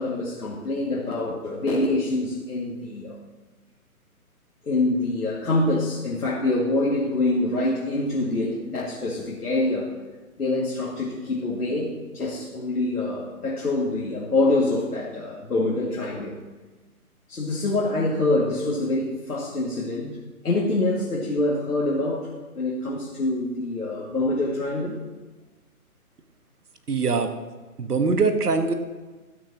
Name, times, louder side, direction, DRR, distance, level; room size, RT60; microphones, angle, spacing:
voice 1, 0.0-3.2 4.6-9.9 10.4-16.4 17.3-20.2 20.4-22.3 22.6-25.0, left 2 dB, 80° left, -5 dB, 2.2 m, -25 dB
voice 2, 26.9-27.3 27.8-28.7, right 4 dB, 90° right, 7 dB, 1.3 m, -22 dB
12.5 x 9.6 x 2.8 m, 1.2 s
hypercardioid pair, 150°, 45 cm